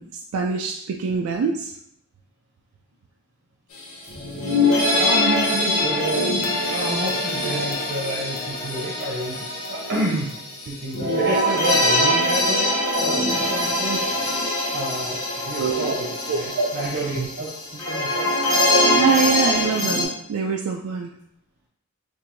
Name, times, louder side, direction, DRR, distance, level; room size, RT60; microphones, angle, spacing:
voice 1, 0.0-1.7 15.6-15.9 16.3-16.7 17.1-17.3 18.9-21.1, right 5 dB, 85° right, 2 dB, 0.3 m, -24 dB
sound 1, 3.8-3.9 4.1-20.0, left 1 dB, 80° left, 0.9 m, -23 dB
voice 2, 4.9-6.3 6.7-10.3 10.7-14.0 14.7-17.5 17.8-18.3, right 1 dB, 55° right, -3 dB, 0.8 m, -29 dB
4.4 x 2.5 x 2.6 m, 0.73 s
head